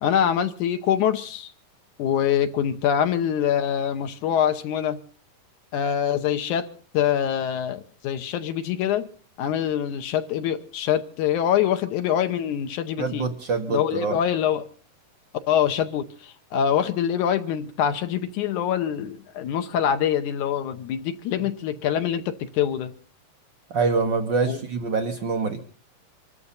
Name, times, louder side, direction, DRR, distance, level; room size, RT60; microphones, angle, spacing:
voice 1, 0.0-1.5 2.0-5.0 5.7-6.7 6.9-9.1 9.4-13.3 13.7-14.7 15.5-22.9 24.5-24.6, left 9 dB, 70° left, 2.3 m, -24 dB
voice 2, 13.0-14.2 23.7-25.6, right 4 dB, 70° right, 1.0 m, -25 dB
25.0 x 13.5 x 4.1 m
omnidirectional pair, 3.8 m